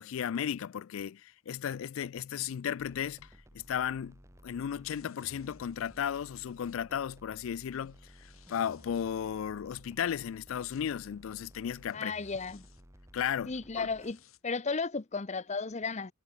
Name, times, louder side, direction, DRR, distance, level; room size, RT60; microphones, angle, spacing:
voice 1, 0.0-3.3 3.5-4.2 4.4-8.0 8.5-12.1 13.1-13.9, left 8 dB, 70° left, 0.3 m, -34 dB
sound 1, 2.8-14.1, equal, 15° right, 3.1 m, -56 dB
sound 2, 4.9-6.8 7.6-9.1 10.2-10.9 11.9-12.9 13.8-14.4 15.0-15.1, left 10 dB, 85° left, 3.6 m, -63 dB
voice 2, 11.9-12.7 13.5-16.1, left 4 dB, 35° left, 0.8 m, -34 dB
head